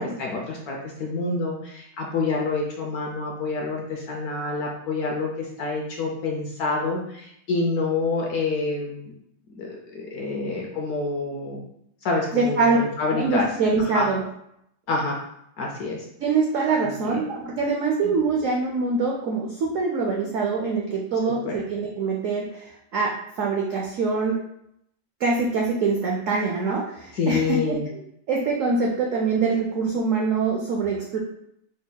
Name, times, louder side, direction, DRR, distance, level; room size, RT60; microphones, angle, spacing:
voice 1, 0.0-9.1 9.5-11.6 12.0-13.5 13.8-14.1 14.9-15.2 15.6-16.1 17.0-17.2 18.0-18.1 21.3-21.6 27.1-27.9, left 3 dB, 65° left, 0 dB, 0.9 m, -27 dB
voice 2, 12.3-12.8 13.1-14.2 16.2-23.1 23.4-24.4 25.2-27.8 28.3-31.2, right 4 dB, 90° right, -2 dB, 0.6 m, -24 dB
4.9 x 4.0 x 2.2 m, 0.76 s
omnidirectional pair, 2.1 m